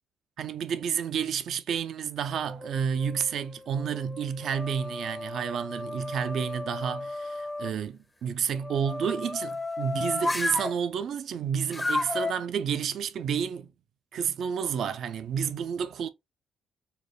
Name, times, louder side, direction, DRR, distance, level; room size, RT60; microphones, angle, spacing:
voice 1, 0.4-13.7 14.1-16.1, right 7 dB, 65° right, 0.4 m, -30 dB
sound 1, 2.3-3.2 3.8-7.7 8.5-10.8 11.7-12.3, left 2 dB, 15° left, 0.5 m, -33 dB
4.3 x 2.3 x 3.2 m
cardioid pair, 90°, 0 cm